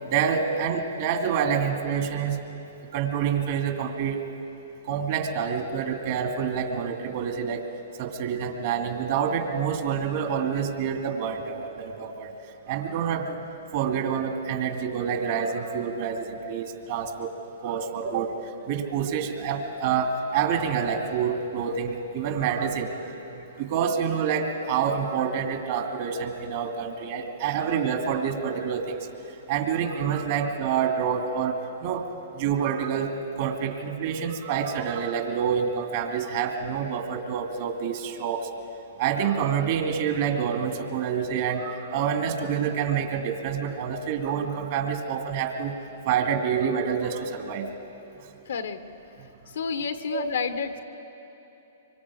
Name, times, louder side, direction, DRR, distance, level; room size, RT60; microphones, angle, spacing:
voice 1, 0.1-2.4 2.9-4.2 4.9-7.7 8.0-12.3 12.7-13.4 13.7-17.3 17.6-18.3 18.7-23.2 23.6-29.0 29.5-32.0 32.3-38.5 39.0-45.8 46.1-47.7 50.1-50.2, right 7 dB, 50° right, 4 dB, 2.5 m, -27 dB
voice 2, 48.5-48.8 49.5-50.8, left 6 dB, 75° left, 9 dB, 1.4 m, -30 dB
25.0 x 24.5 x 5.0 m, 3.0 s
hypercardioid pair, 125°, 0 cm